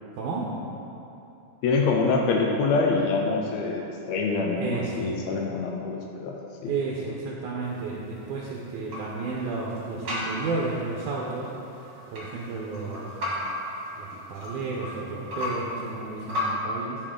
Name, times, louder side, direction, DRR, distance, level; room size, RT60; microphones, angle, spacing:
voice 1, 0.1-0.6 4.6-5.2 6.7-11.5 12.1-13.2 14.0-17.0, right 3 dB, 75° right, -4 dB, 2.1 m, -32 dB
voice 2, 1.6-6.3 6.6-6.7, left 4 dB, 90° left, 0 dB, 1.5 m, -25 dB
sound 1, 7.6-16.5, left 1 dB, 45° right, 1.8 m, -36 dB
11.5 x 4.8 x 3.7 m, 2.9 s
omnidirectional pair, 3.8 m